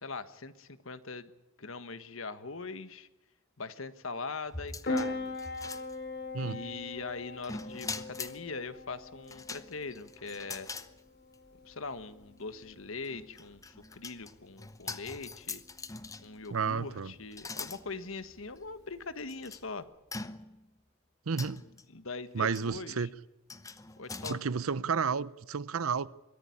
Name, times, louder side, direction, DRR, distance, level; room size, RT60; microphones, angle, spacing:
voice 1, 0.0-1.3 1.6-3.1 3.6-5.4 6.4-10.7 11.6-15.6 16.2-19.9 21.6-23.1 24.0-24.4, left 4 dB, 70° left, 1.4 m, -41 dB
sound 1, 4.5-6.3 7.4-8.4 9.3-10.9 11.3-11.4 13.0-16.5 17.3-17.8 18.6-18.7 19.3-19.6 20.1-20.7 21.4-21.8 22.5-22.8 23.5-24.3, left 3 dB, 15° left, 0.9 m, -42 dB
Piano, 4.8-19.8, left 2 dB, 50° left, 3.7 m, -43 dB
voice 2, 16.5-17.1 21.3-21.6 22.3-23.1 24.3-26.1, right 5 dB, 85° right, 0.7 m, -31 dB
23.0 x 15.0 x 10.0 m
head